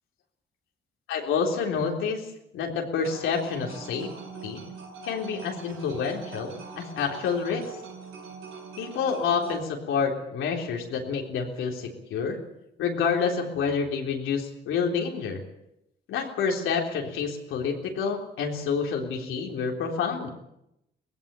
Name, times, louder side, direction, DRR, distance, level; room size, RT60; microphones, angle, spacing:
voice 1, 1.1-2.3 2.5-4.1 4.4-4.6 5.0-7.7 8.8-12.4 12.8-15.4 16.1-20.3, left 6 dB, 85° left, 1 dB, 3.7 m, -28 dB
sound 1, 3.0-9.6, right 4 dB, 90° right, 7.0 m, -42 dB
19.0 x 16.0 x 9.0 m, 0.84 s
cardioid pair, 90°, 20 cm